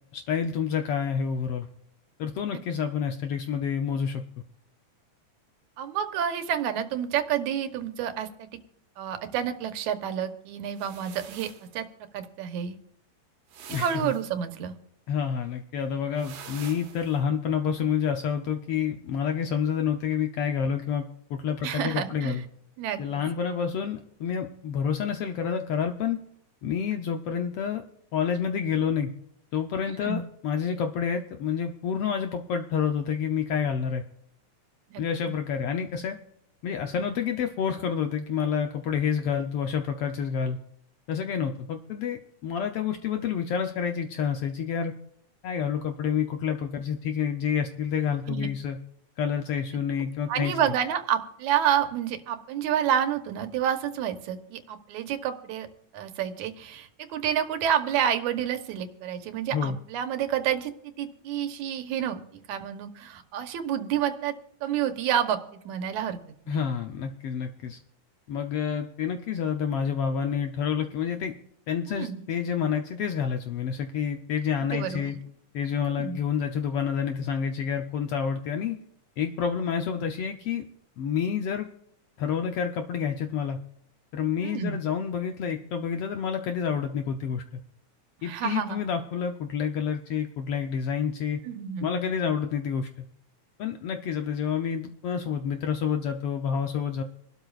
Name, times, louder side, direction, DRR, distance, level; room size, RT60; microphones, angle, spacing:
voice 1, 0.1-1.7 2.2-4.2 13.7-14.1 15.1-21.0 21.3-22.4 23.0-26.2 26.6-27.8 28.1-29.1 29.5-34.0 35.0-36.2 36.6-40.6 41.1-44.9 45.4-48.8 49.2-50.5 59.5-59.8 66.5-67.8 68.3-71.3 71.7-75.2 75.5-78.8 79.2-80.7 81.0-81.7 82.2-83.6 84.1-87.4 88.2-91.4 91.8-92.9 93.6-97.0, left 7 dB, 70° left, 5 dB, 1.4 m, -28 dB
voice 2, 5.8-8.5 9.0-11.9 12.1-12.8 13.7-14.7 21.6-22.4 22.8-23.2 29.9-30.2 34.9-35.3 48.3-48.5 50.3-55.7 55.9-60.7 61.0-64.3 64.6-65.4 65.7-66.2 66.5-66.6 71.9-72.2 74.7-75.2 75.8-76.2 84.4-84.8 88.2-88.8 91.4-91.9, right 9 dB, 80° right, 8 dB, 2.3 m, -29 dB
sound 1, 10.8-11.7 13.5-14.3 16.2-17.2, right 8 dB, 65° right, 2.2 m, -45 dB
27.0 x 12.0 x 2.4 m, 0.73 s
omnidirectional pair, 3.4 m